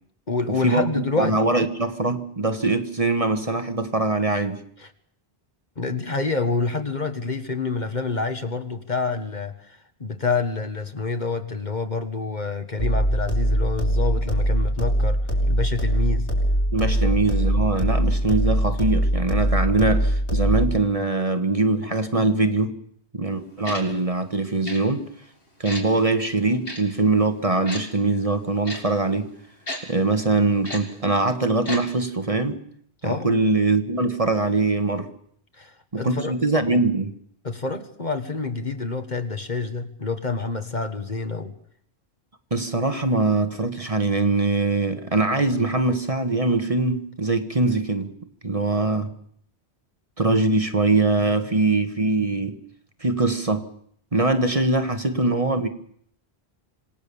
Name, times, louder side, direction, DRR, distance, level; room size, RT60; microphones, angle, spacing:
voice 1, 0.3-1.4 4.8-4.9 5.8-15.2 15.5-16.3 17.0-17.1 33.0-33.3 35.6-36.8 37.4-41.5, left 3 dB, 45° left, 1.7 m, -28 dB
voice 2, 1.2-4.6 16.7-22.8 23.1-25.1 25.6-29.3 29.8-32.6 33.0-35.1 35.9-37.1 42.5-48.1 48.4-49.1 50.2-52.6 53.0-53.7 54.1-55.7, right 2 dB, 30° right, 1.5 m, -22 dB
sound 1, 12.8-20.8, equal, 85° left, 4.6 m, -22 dB
Tick-tock, 23.6-23.8 24.6-24.8 25.6-25.8 26.6-26.8 27.7-27.8 28.6-28.8 29.7-29.8 30.6-30.8 31.6-31.8 32.1-32.2, left 1 dB, 60° left, 4.0 m, -32 dB
26.5 x 18.5 x 7.0 m
omnidirectional pair, 1.1 m